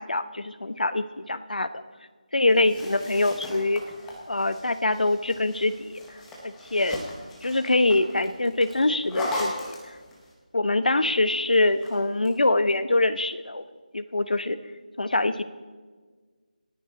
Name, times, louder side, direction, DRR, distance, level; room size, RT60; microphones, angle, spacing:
voice 1, 0.0-1.7 2.3-3.8 4.3-6.0 6.7-7.0 7.4-9.5 10.5-13.6 13.9-14.6 15.0-15.4, left 2 dB, 80° left, 12 dB, 1.0 m, -24 dB
sound 1, 2.5-10.3 11.5-12.3, left 1 dB, 5° left, 0.7 m, -38 dB
26.5 x 9.6 x 3.9 m, 1.5 s
figure-of-eight pair, 175°, 4 cm